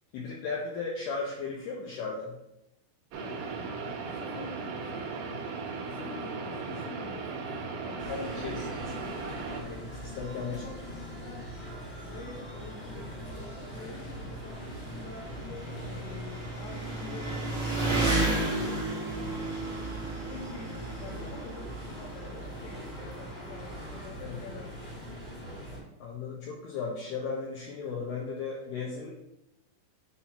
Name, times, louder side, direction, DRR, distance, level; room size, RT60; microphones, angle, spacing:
voice 1, 0.1-2.4 8.1-8.6 9.5-10.6 17.8-18.0 24.2-24.4 26.0-29.1, left 4 dB, 80° left, -3 dB, 2.4 m, -36 dB
sound 1, 3.1-9.6, right 4 dB, 80° right, 2.2 m, -37 dB
voice 2, 3.2-3.7 4.2-5.2 5.9-7.5 7.8-9.2 10.4-11.5 12.0-17.4 17.8-19.4 20.3-24.7, left 4 dB, 60° left, -3 dB, 2.0 m, -47 dB
sound 2, 8.0-25.8, equal, 25° left, 0.9 m, -42 dB
Engine, 9.9-10.0 11.0-11.1 11.3-24.0, right 2 dB, 45° right, 1.0 m, -34 dB
7.3 x 2.8 x 5.7 m, 0.84 s
omnidirectional pair, 5.6 m